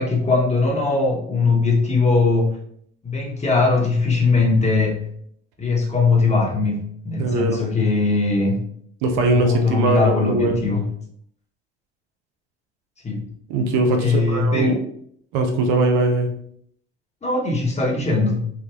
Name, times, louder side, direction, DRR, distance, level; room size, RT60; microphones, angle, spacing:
voice 1, 0.0-2.6 3.0-5.0 5.6-8.6 9.4-10.8 13.0-13.2 14.0-14.7 17.2-18.5, left 3 dB, 20° left, 0 dB, 1.0 m, -20 dB
voice 2, 7.2-7.6 9.0-10.6 13.5-14.8 15.3-16.3, right 2 dB, 80° right, 4 dB, 0.6 m, -20 dB
3.4 x 2.2 x 2.9 m, 0.65 s
supercardioid pair, 80°, 30 cm